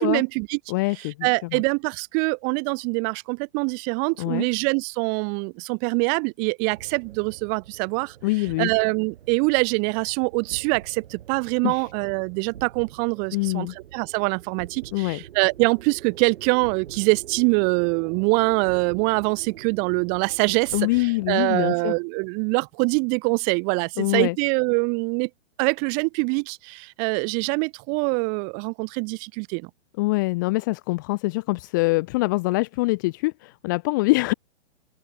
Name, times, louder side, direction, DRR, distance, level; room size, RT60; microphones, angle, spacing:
voice 1, 0.0-0.6 1.0-8.1 8.6-13.7 13.9-25.3 25.6-29.7, right 40 dB or more, 25° right, 1.4 m, -24 dB
voice 2, 0.7-1.6 4.2-4.5 8.2-8.7 11.6-11.8 13.3-13.7 14.9-15.2 20.7-21.9 24.0-24.4 30.0-34.3, left 23 dB, 20° left, 0.6 m, -24 dB
sound 1, 6.7-21.6, right 10 dB, 60° right, 4.9 m, -44 dB
open air
hypercardioid pair, 165°, 35 cm